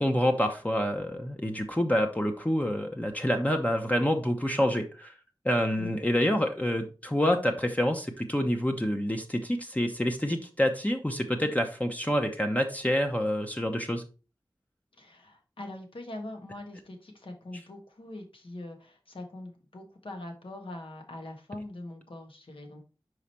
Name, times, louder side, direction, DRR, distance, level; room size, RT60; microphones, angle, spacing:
voice 1, 0.0-5.1 5.4-14.0, equal, 15° left, 3 dB, 0.9 m, -27 dB
voice 2, 15.0-22.8, left 1 dB, 85° left, 3 dB, 1.5 m, -43 dB
5.0 x 4.9 x 4.3 m, 0.33 s
wide cardioid pair, 60°, 9 cm